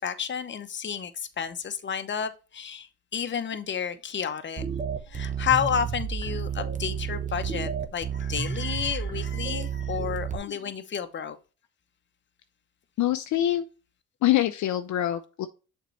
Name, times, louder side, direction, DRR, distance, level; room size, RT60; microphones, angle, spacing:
voice 1, 0.0-4.7 5.1-11.4, left 8 dB, 35° left, 0.9 m, -31 dB
sound 1, 4.6-10.4, right 7 dB, 25° right, 0.9 m, -31 dB
voice 2, 13.0-13.6 14.2-15.5, left 13 dB, 60° left, 0.6 m, -25 dB
6.7 x 4.5 x 3.1 m
cardioid pair, 90°, 32 cm